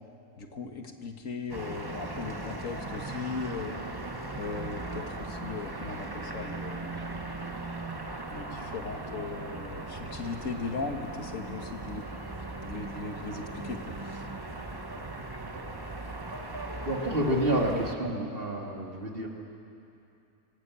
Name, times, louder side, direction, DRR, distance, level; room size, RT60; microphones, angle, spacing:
voice 1, 0.4-3.8 4.4-7.1 8.3-12.0 12.6-14.3, left 4 dB, 65° left, 4 dB, 1.9 m, -38 dB
sound 1, 1.5-17.9, right 2 dB, 20° right, 1.1 m, -38 dB
voice 2, 16.9-19.3, right 1 dB, 40° right, 0 dB, 2.5 m, -29 dB
24.5 x 18.5 x 8.2 m, 2.7 s
omnidirectional pair, 1.5 m